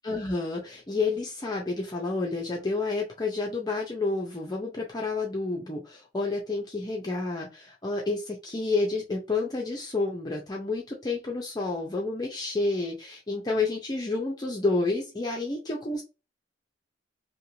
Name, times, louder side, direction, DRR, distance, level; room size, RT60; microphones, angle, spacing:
voice 1, 0.0-16.0, left 3 dB, 20° left, -1 dB, 0.5 m, -30 dB
2.8 x 2.5 x 3.0 m, 0.28 s
head